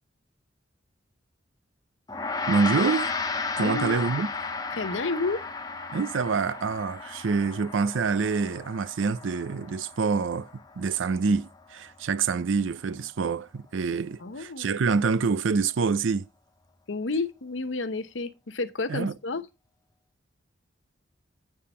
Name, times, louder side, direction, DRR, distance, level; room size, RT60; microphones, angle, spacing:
Gong, 2.1-11.6, left 4 dB, 20° left, 0.7 m, -34 dB
voice 1, 2.5-3.1 3.6-4.3 5.9-10.5 10.8-16.3 18.9-19.1, right 4 dB, 80° right, 0.5 m, -26 dB
voice 2, 3.6-4.0 4.7-5.4 14.2-14.7 16.9-19.4, left 3 dB, 75° left, 0.8 m, -30 dB
8.5 x 5.6 x 4.2 m
head